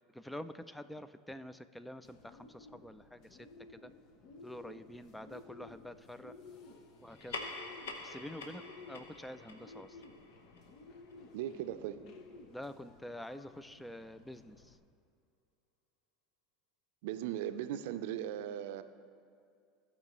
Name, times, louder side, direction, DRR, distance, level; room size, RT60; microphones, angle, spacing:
voice 1, 0.1-3.9 4.4-6.4 7.0-7.5 8.0-10.0 12.5-14.8, left 1 dB, 5° left, 13 dB, 0.4 m, -47 dB
Bird, 2.0-14.8, left 3 dB, 60° left, 0.8 m, -55 dB
sound 1, 7.1-11.9, left 3 dB, 85° left, 0.9 m, -47 dB
voice 2, 11.3-12.0 17.0-18.8, right 11 dB, 75° right, 11 dB, 0.5 m, -38 dB
16.0 x 5.5 x 3.0 m, 2.3 s
hypercardioid pair, 90°, 0 cm